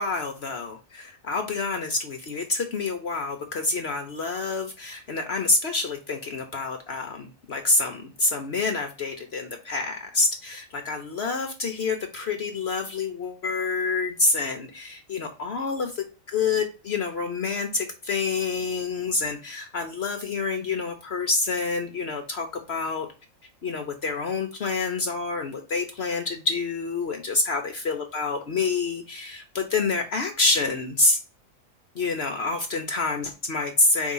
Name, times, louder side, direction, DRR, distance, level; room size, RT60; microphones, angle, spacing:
voice 1, 0.0-15.9 16.3-23.1 23.6-31.2 31.9-34.1, left 3 dB, 55° left, 5 dB, 1.0 m, -27 dB
4.7 x 3.7 x 5.4 m, 0.34 s
omnidirectional pair, 1.4 m